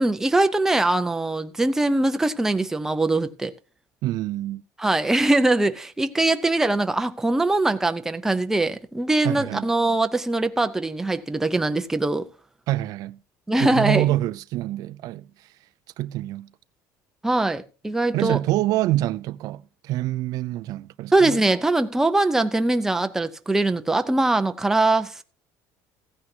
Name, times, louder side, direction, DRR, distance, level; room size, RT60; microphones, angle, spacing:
voice 1, 0.0-3.5 4.8-12.3 13.5-14.1 17.2-18.4 21.1-25.2, right 2 dB, 5° right, 0.6 m, -22 dB
voice 2, 4.0-4.6 9.2-9.7 12.7-13.2 13.6-15.5 16.0-16.5 18.1-21.4, right 15 dB, 60° right, 0.4 m, -26 dB
15.5 x 9.5 x 2.8 m
cardioid pair, 155°, 7 cm